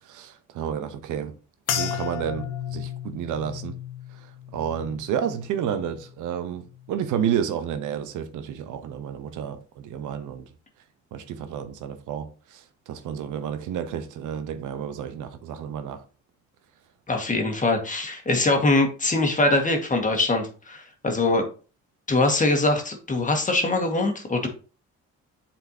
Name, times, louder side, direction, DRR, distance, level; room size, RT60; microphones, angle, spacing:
voice 1, 0.1-1.3 1.7-3.8 4.5-10.5 11.1-16.0, right 8 dB, 85° right, 0.9 m, -30 dB
sound 1, 1.7-6.2 6.6-7.2 7.8-8.0, left 9 dB, 85° left, 1.1 m, -34 dB
voice 2, 17.1-21.5 22.1-24.5, left 2 dB, 25° left, 1.7 m, -23 dB
7.9 x 4.4 x 2.8 m
cardioid pair, 90°, 30 cm